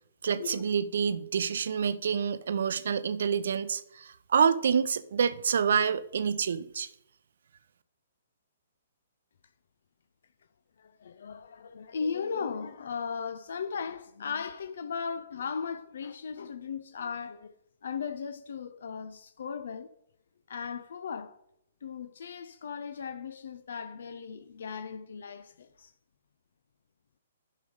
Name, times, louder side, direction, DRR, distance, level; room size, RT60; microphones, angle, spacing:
voice 1, 0.2-6.9, right 7 dB, 65° right, 0.6 m, -27 dB
voice 2, 10.8-17.6 17.8-19.9 20.5-21.4 21.8-25.9, left 6 dB, 65° left, 0.5 m, -37 dB
10.5 x 5.4 x 4.9 m
hypercardioid pair, 130°, 0 cm